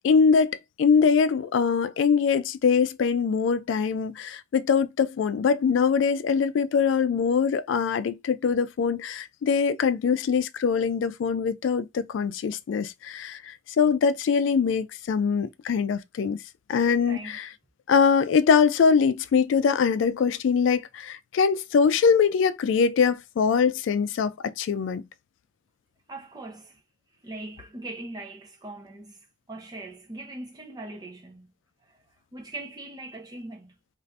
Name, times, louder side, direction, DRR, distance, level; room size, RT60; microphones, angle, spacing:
voice 1, 0.0-16.4 16.7-17.5 17.9-25.0, left 6 dB, 85° left, 0.3 m, -23 dB
voice 2, 17.0-17.4 26.1-26.8 27.2-31.5 31.9-32.0 32.3-33.7, right 2 dB, 20° right, 0.5 m, -41 dB
2.6 x 2.5 x 3.1 m
head